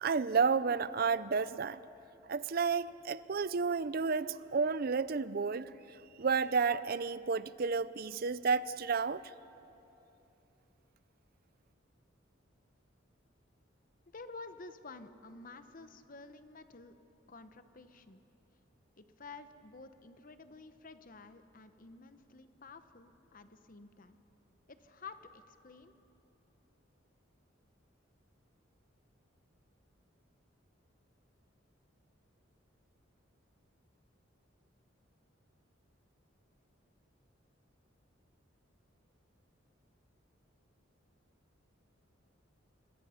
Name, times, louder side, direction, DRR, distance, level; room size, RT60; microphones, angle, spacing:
voice 1, 0.0-1.8 2.3-5.7 6.2-9.2, right 5 dB, 50° right, 0.5 m, -31 dB
voice 2, 14.1-16.9 17.3-18.2 19.0-24.2 24.7-25.9, left 3 dB, 45° left, 0.9 m, -51 dB
26.5 x 21.0 x 5.8 m
head